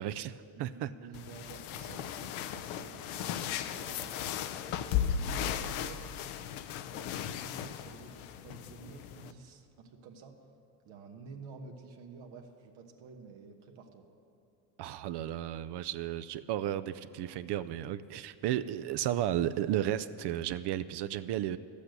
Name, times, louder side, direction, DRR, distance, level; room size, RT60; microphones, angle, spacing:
voice 1, 0.0-0.9 14.8-21.6, right 12 dB, 60° right, 13 dB, 0.5 m, -33 dB
voice 2, 0.5-4.1 4.6-6.2 6.8-10.4 10.8-14.0, right 4 dB, 80° right, 2 dB, 1.3 m, -51 dB
sound 1, 1.1-9.3, left 9 dB, 90° left, 0.7 m, -36 dB
12.0 x 8.5 x 7.9 m, 2.7 s
cardioid pair, 105°, 48 cm